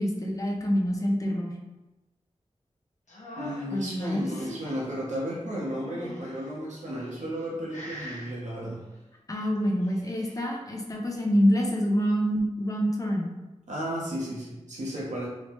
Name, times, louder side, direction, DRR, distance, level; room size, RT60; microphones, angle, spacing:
voice 1, 0.0-1.5 3.7-4.2 9.3-13.3, equal, 30° left, -1 dB, 0.5 m, -26 dB
sound 1, 3.1-4.8 5.6-6.5 7.1-7.5 7.7-8.3 9.6-10.4, left 1 dB, 85° left, 0.7 m, -42 dB
voice 2, 3.4-8.8 13.7-15.3, equal, 80° right, -6 dB, 0.8 m, -34 dB
3.1 x 2.0 x 3.1 m, 1.1 s
wide cardioid pair, 85°, 12 cm